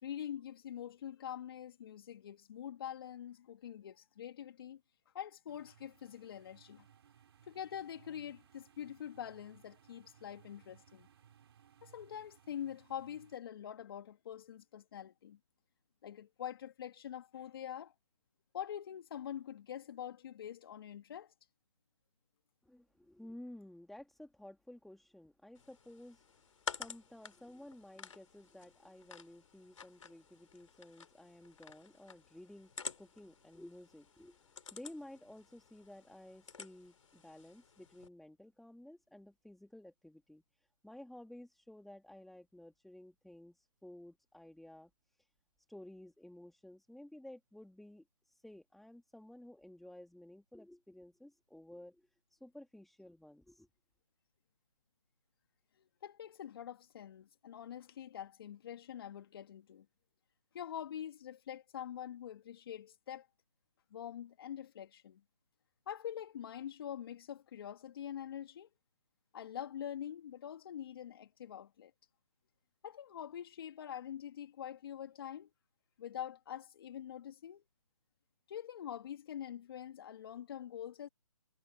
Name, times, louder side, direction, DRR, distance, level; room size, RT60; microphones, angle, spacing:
voice 1, 0.0-4.8 5.1-6.9 7.5-11.1 11.8-15.4 16.0-17.9 18.5-21.3 56.0-59.9 60.5-63.3 63.9-65.2 65.9-68.7 69.3-71.9 72.8-75.5 76.0-77.6 78.5-81.1, left 10 dB, 40° left, 2.1 m, -45 dB
sound 1, 5.5-13.4, right 9 dB, 45° right, 3.5 m, -64 dB
voice 2, 22.6-26.2 26.7-44.9 45.2-45.3 45.7-53.7, left 1 dB, ahead, 2.5 m, -54 dB
sound 2, 25.6-38.1, left 6 dB, 60° left, 4.4 m, -50 dB
hypercardioid pair, 155°, 19 cm